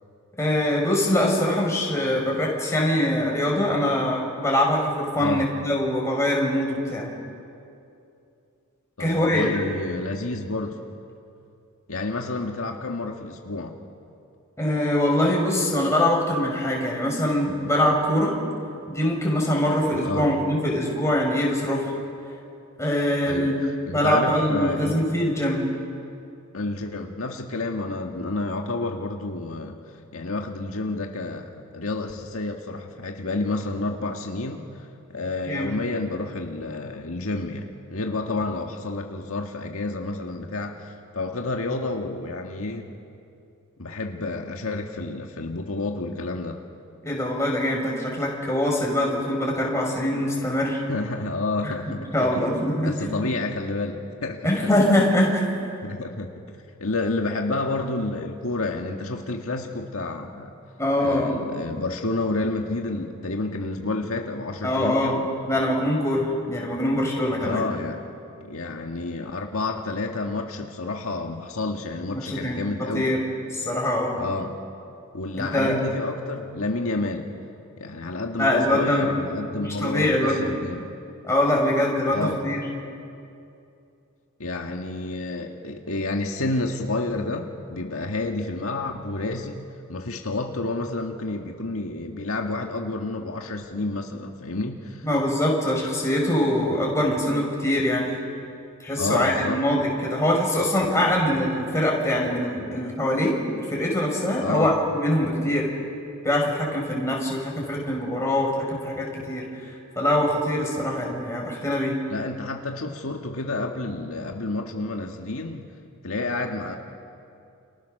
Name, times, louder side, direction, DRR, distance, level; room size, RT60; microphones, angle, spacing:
voice 1, 0.4-7.1 9.0-9.6 14.6-18.3 18.9-21.9 22.8-25.7 35.4-35.7 47.0-50.8 51.6-51.7 52.1-53.2 54.4-55.5 60.8-61.4 64.6-65.2 65.5-67.7 72.1-73.2 73.5-74.2 75.4-75.8 78.4-79.1 79.6-80.5 81.2-82.6 95.0-98.2 98.8-103.4 103.7-105.7 106.2-112.0, left 1 dB, 15° left, -1 dB, 5.6 m, -23 dB
voice 2, 5.2-5.5 9.0-10.8 11.9-13.8 20.0-20.3 23.3-23.5 23.9-25.0 26.5-29.8 30.1-34.6 35.1-42.9 43.8-46.6 50.9-52.1 52.3-54.4 55.8-56.3 56.8-60.5 61.0-65.3 67.4-68.0 68.4-73.1 74.1-74.6 75.1-77.3 77.8-80.9 82.1-82.4 84.4-89.6 89.9-95.1 99.0-99.6 104.4-104.7 112.1-115.7 116.0-116.8, left 2 dB, 75° left, 2 dB, 1.8 m, -29 dB
29.5 x 29.0 x 6.7 m, 2.6 s
head